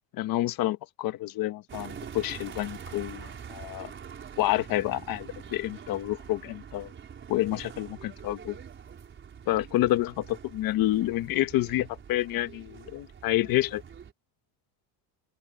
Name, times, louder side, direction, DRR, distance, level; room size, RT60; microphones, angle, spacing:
voice 1, 0.1-3.9 4.4-6.9 7.3-8.6 9.5-13.8, left 15 dB, 55° left, 1.3 m, -28 dB
sound 1, 1.7-14.1, right 7 dB, 25° right, 4.7 m, -45 dB
open air
cardioid pair, 175°, 43 cm